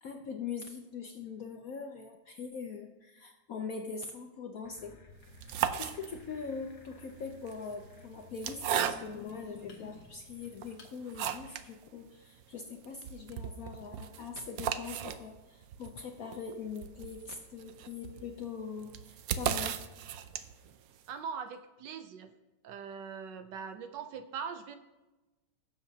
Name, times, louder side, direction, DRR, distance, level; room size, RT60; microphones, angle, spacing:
voice 1, 0.0-5.0 5.8-19.8, left 5 dB, 65° left, 4 dB, 0.9 m, -42 dB
sound 1, 4.6-10.9, left 4 dB, 45° left, 1.5 m, -54 dB
sound 2, 5.2-6.5 7.3-9.4 10.0-10.1 10.6-11.7 12.0-12.1 12.4-12.5 12.8-20.7, right 9 dB, 85° right, 0.8 m, -36 dB
voice 2, 21.1-22.3 22.6-24.8, right 6 dB, 70° right, 8 dB, 1.2 m, -41 dB
17.5 x 7.0 x 2.8 m, 1.1 s
omnidirectional pair, 2.1 m